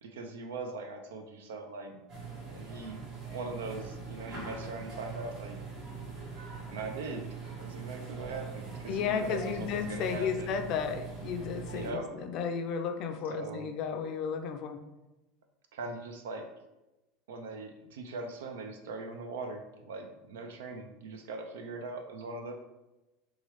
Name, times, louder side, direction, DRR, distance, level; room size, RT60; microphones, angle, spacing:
voice 1, 0.0-2.0 2.5-3.0 3.3-5.6 6.7-10.6 11.7-12.1 13.3-13.7 15.7-16.4 17.3-22.5, right 3 dB, 85° right, 5 dB, 0.4 m, -40 dB
sound 1, 2.1-11.9, right 4 dB, 55° right, 1.3 m, -42 dB
voice 2, 8.9-14.8, left 6 dB, 55° left, 7 dB, 0.4 m, -33 dB
3.0 x 2.3 x 3.0 m, 1.0 s
supercardioid pair, 105°, 0 cm